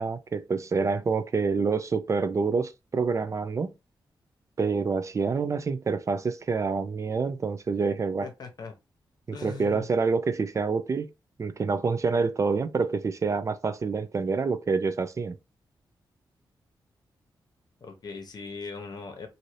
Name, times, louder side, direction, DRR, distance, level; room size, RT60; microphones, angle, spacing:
voice 1, 0.0-3.7 4.6-8.3 9.3-11.1 11.4-15.4, right 4 dB, 40° right, 0.4 m, -27 dB
voice 2, 8.2-8.7 9.3-9.9 17.8-19.3, left 5 dB, 55° left, 0.8 m, -39 dB
2.7 x 2.6 x 3.1 m
cardioid pair, 85°, 8 cm